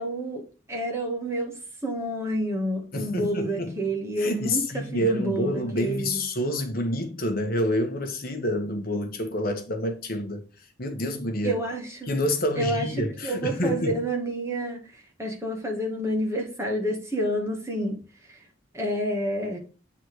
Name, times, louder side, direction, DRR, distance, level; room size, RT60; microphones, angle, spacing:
voice 1, 0.0-1.5 1.8-6.2 11.4-12.1 12.6-12.9 13.2-14.8 15.2-18.0 18.3-18.4 18.7-19.6, right 1 dB, 15° right, 1.7 m, -29 dB
voice 2, 2.9-3.8 4.2-10.4 10.8-11.6 12.1-14.0, left 1 dB, 45° left, 1.4 m, -28 dB
7.9 x 4.1 x 4.7 m
head